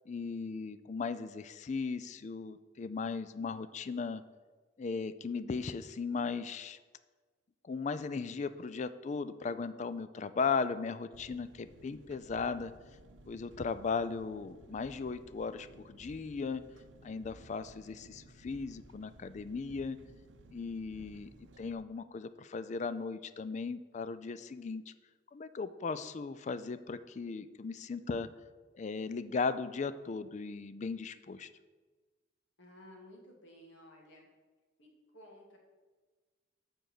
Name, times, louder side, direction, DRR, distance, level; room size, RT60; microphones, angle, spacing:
voice 1, 0.1-4.2 4.8-6.8 7.7-12.7 13.3-16.6 17.0-20.0 20.5-21.3 21.6-24.9 25.3-28.3 28.8-31.5, left 4 dB, 40° left, 14 dB, 0.4 m, -37 dB
Engine, 11.1-21.7, right 1 dB, 80° right, 0.7 m, -57 dB
voice 2, 32.6-34.3 34.8-35.6, left 1 dB, 80° left, 0 dB, 1.9 m, -55 dB
7.7 x 4.6 x 6.5 m, 1.4 s
head